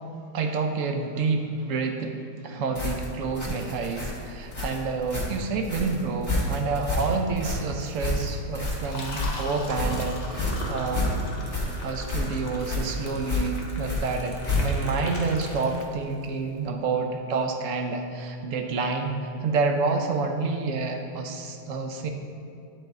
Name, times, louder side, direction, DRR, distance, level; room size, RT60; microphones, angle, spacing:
voice 1, 0.3-11.2 11.8-22.1, right 4 dB, 65° right, 4 dB, 0.8 m, -28 dB
sound 1, 2.7-15.0, left 2 dB, 10° left, 1.4 m, -30 dB
Liquid, 8.5-16.2, left 2 dB, 35° left, 0.8 m, -39 dB
10.5 x 4.0 x 3.9 m, 2.6 s
omnidirectional pair, 1.8 m